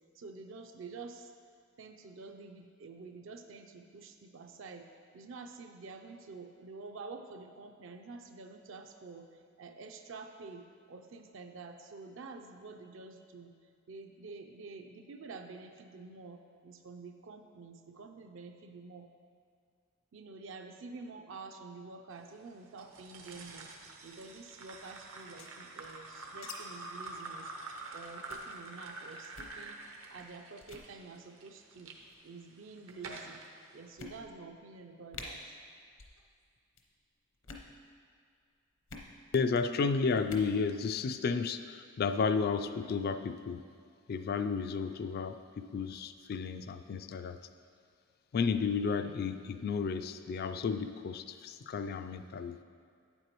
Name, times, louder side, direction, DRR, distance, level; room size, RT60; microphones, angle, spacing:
voice 1, 0.2-1.3 1.8-4.9 5.1-9.3 9.6-13.5 13.9-19.1 20.1-23.7 24.0-27.5 27.9-29.8 30.1-31.9 32.2-33.4 33.7-35.4, right 4 dB, 65° right, 5 dB, 0.5 m, -48 dB
sound 1, 22.8-32.0 32.5-33.5, right 3 dB, 80° right, 0.8 m, -46 dB
sound 2, 25.1-26.5 26.8-26.9 27.2-27.4 27.7-27.9 28.3-28.5 29.2-29.6 30.2-30.3 30.6-30.9 31.8-32.2 32.9-33.0 33.4-33.5 34.0-34.5 34.8-34.9 35.1-35.3 35.9-36.2 36.4-36.8 37.3-37.7 38.9-39.1 40.2-40.5, left 4 dB, 65° left, 0.8 m, -48 dB
voice 2, 39.3-43.6 44.1-47.4 48.3-52.6, left 5 dB, 45° left, 10 dB, 0.3 m, -32 dB
9.1 x 7.9 x 3.0 m, 2.2 s
head